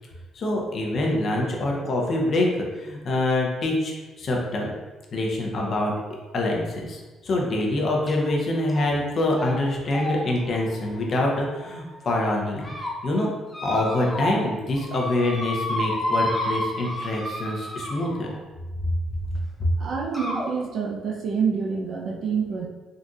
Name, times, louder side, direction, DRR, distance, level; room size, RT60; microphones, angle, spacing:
voice 1, 0.3-2.5 2.7-4.7 5.1-5.9 6.3-12.7 13.0-13.3 13.6-18.3, left 1 dB, 55° left, -1 dB, 0.7 m, -25 dB
sound 1, 8.1-8.3 8.7-9.1 9.3-9.5 9.9-11.8 12.4-12.9 13.5-14.5 14.8-18.4 19.3-19.4 20.1-20.5, equal, 10° left, 0.7 m, -31 dB
voice 2, 19.8-22.7, right 6 dB, 60° right, -1 dB, 0.4 m, -27 dB
3.8 x 2.6 x 2.4 m, 1.2 s
cardioid pair, 80°, 0 cm